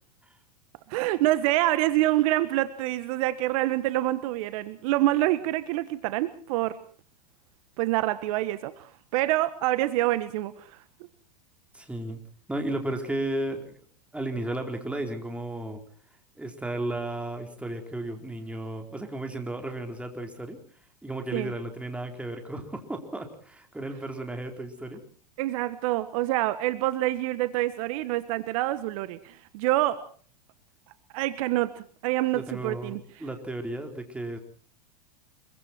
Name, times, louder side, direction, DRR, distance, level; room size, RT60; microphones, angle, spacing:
voice 1, 0.9-6.8 7.8-10.8 21.3-21.5 25.4-30.0 31.1-33.0, right 16 dB, 60° right, 14 dB, 1.3 m, -26 dB
voice 2, 11.7-12.2 12.5-13.8 14.1-15.8 16.4-20.6 21.0-25.0 32.3-34.4, right 1 dB, 5° right, 4 dB, 4.1 m, -34 dB
25.0 x 23.5 x 4.5 m, 0.44 s
hypercardioid pair, 100°, 21 cm